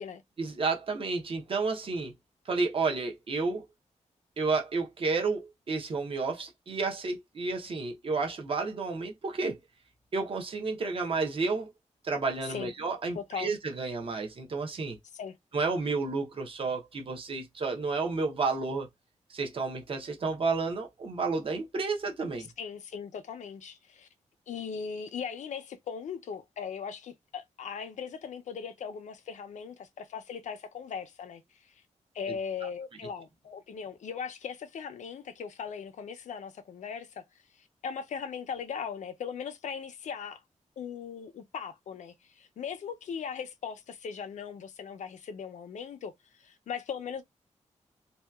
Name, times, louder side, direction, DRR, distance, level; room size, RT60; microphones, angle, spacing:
voice 1, 0.4-2.1 2.5-3.7 4.4-9.6 10.1-11.7 12.0-15.0 15.5-18.9 19.3-22.5 32.3-32.4, right 4 dB, 45° right, 0.7 m, -31 dB
voice 2, 13.1-13.5 15.1-15.4 22.6-24.1 24.5-31.4 32.1-37.2 37.8-40.4 40.8-47.2, left 6 dB, 75° left, 0.4 m, -39 dB
2.7 x 2.2 x 2.2 m
wide cardioid pair, 175°, 13 cm